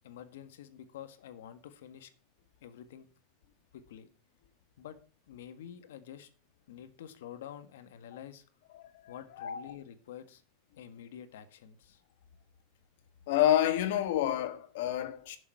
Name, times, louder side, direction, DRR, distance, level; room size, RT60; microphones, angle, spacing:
voice 1, 0.0-2.1 2.6-3.1 3.7-4.1 4.8-5.0 5.3-6.3 6.7-8.4 9.1-10.4 10.8-12.0, left 10 dB, 85° left, 1.6 m, -48 dB
voice 2, 8.7-9.7 13.3-15.4, left 12 dB, 60° left, 1.6 m, -29 dB
11.5 x 7.1 x 5.6 m
supercardioid pair, 175°, 0 cm